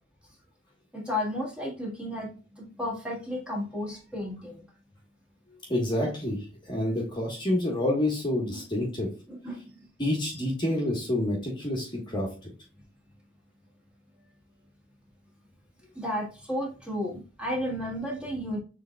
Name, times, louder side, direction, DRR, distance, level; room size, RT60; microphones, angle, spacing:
voice 1, 0.9-4.6 8.4-8.6 9.3-9.8 15.9-18.6, left 1 dB, 5° right, -3 dB, 1.5 m, -33 dB
voice 2, 5.7-9.1 10.0-12.5, left 1 dB, 25° left, -1 dB, 1.2 m, -28 dB
6.6 x 3.5 x 2.2 m, 0.35 s
head